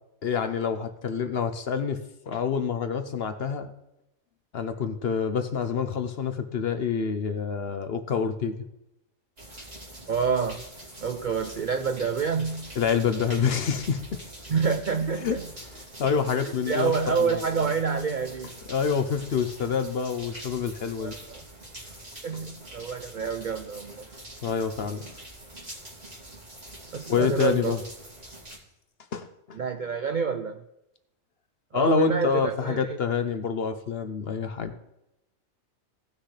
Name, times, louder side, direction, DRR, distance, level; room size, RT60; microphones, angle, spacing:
voice 1, 0.2-2.0 2.3-3.7 4.5-8.5 12.8-14.0 15.2-15.4 16.0-16.9 17.2-17.7 18.7-21.1 24.4-25.0 27.1-27.8 29.1-29.6 31.7-34.7, left 6 dB, 55° left, 9 dB, 0.8 m, -27 dB
sound 1, 9.4-28.6, right 1 dB, 45° right, 3.0 m, -44 dB
voice 2, 10.1-10.7 11.0-12.7 14.5-15.5 16.4-18.6 21.0-21.4 22.2-24.1 26.9-27.8 29.5-30.6 31.7-33.0, right 5 dB, 60° right, 7 dB, 0.5 m, -28 dB
17.5 x 6.4 x 3.3 m, 0.88 s
omnidirectional pair, 1.5 m